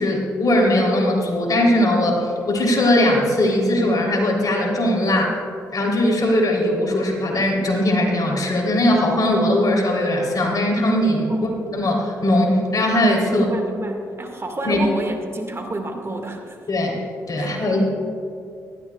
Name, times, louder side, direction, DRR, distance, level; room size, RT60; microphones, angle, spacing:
voice 1, 0.0-5.3 5.7-13.4 14.6-14.8 16.7-17.0 17.3-17.8, left 1 dB, 50° left, 0 dB, 3.4 m, -19 dB
voice 2, 13.3-16.6 17.4-17.8, right 1 dB, 35° right, 3 dB, 1.9 m, -29 dB
19.5 x 13.5 x 2.4 m, 2.4 s
hypercardioid pair, 45°, 8 cm